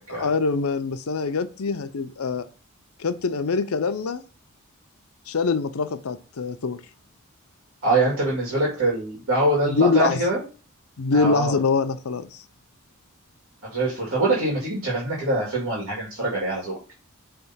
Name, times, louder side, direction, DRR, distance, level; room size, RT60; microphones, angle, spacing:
voice 1, 0.1-2.5 3.0-4.2 5.3-6.8 9.7-10.2 11.0-12.3, left 4 dB, 85° left, 0.6 m, -24 dB
voice 2, 7.8-10.4 11.1-11.6 13.6-16.8, right 2 dB, 70° right, 2.1 m, -24 dB
5.1 x 3.4 x 5.6 m
head